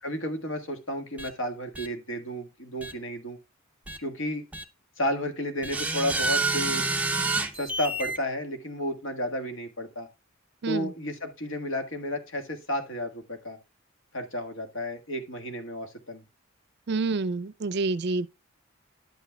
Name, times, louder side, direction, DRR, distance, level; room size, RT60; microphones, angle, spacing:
voice 1, 0.0-3.4 4.0-4.4 5.0-6.9 7.5-10.1 10.7-13.6 14.1-16.2, equal, 80° left, 1.6 m, -32 dB
sound 1, 1.2-1.3 1.7-1.9 2.8-2.9 3.9-4.0 4.5-4.6 5.6-8.2, right 3 dB, 5° right, 0.6 m, -28 dB
voice 2, 16.9-18.3, right 3 dB, 55° right, 0.4 m, -28 dB
10.5 x 8.1 x 2.2 m
head